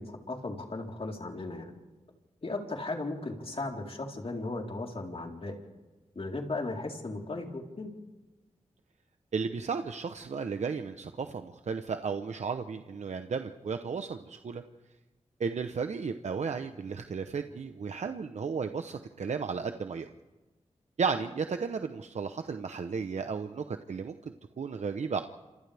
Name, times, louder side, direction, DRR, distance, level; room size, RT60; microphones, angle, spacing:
voice 1, 0.0-1.7 2.4-5.6 6.2-7.9, left 2 dB, 55° left, 0 dB, 4.1 m, -36 dB
voice 2, 9.3-14.6 15.4-20.1 21.0-25.2, right 5 dB, 75° right, 7 dB, 0.9 m, -34 dB
27.5 x 27.5 x 3.5 m, 1.2 s
cardioid pair, 45°, 12 cm